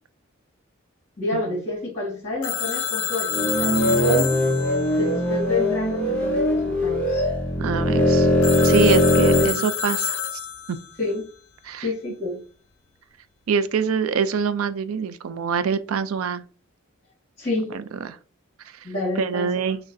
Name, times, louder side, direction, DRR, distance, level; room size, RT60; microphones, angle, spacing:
voice 1, 1.2-4.4 4.9-7.3 8.9-9.6 11.0-11.2 11.8-12.4 17.4-17.7 18.8-19.5, left 2 dB, 35° left, 1.4 m, -29 dB
Telephone, 2.4-6.1 8.4-11.0, left 8 dB, 85° left, 0.4 m, -29 dB
sound 1, 3.3-9.5, left 1 dB, 5° left, 0.7 m, -20 dB
voice 2, 7.6-8.3 8.6-10.2 10.7-10.8 11.6-11.9 13.5-16.4 17.7-18.2 18.7-18.9 19.2-19.8, right 6 dB, 90° right, 0.4 m, -25 dB
6.1 x 2.1 x 2.6 m
head